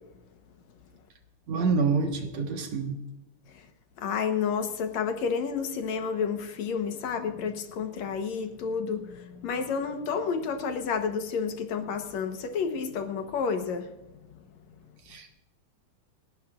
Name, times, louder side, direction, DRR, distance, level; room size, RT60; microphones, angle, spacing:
voice 1, 1.5-2.9 15.1-15.4, right 4 dB, 65° right, 2.6 m, -27 dB
voice 2, 4.0-13.9, left 6 dB, 70° left, 2.3 m, -30 dB
29.0 x 11.5 x 2.5 m
omnidirectional pair, 3.3 m